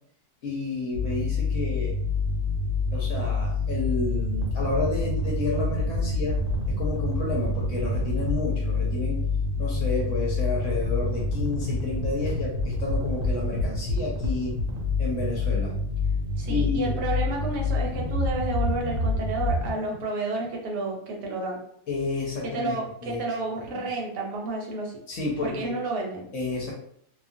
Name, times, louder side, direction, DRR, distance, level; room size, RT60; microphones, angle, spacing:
voice 1, 0.4-2.0 2.9-6.4 6.7-9.3 9.6-14.6 15.0-15.8 16.5-16.9 21.9-22.7 23.0-23.2 25.1-25.8 26.3-26.7, left 3 dB, 60° left, -2 dB, 0.9 m, -30 dB
sound 1, 0.9-19.7, left 2 dB, 70° right, 1.2 m, -27 dB
voice 2, 16.4-21.6 22.4-24.9 25.4-26.3, right 2 dB, 85° right, -1 dB, 1.3 m, -31 dB
2.8 x 2.3 x 2.6 m, 0.68 s
omnidirectional pair, 1.7 m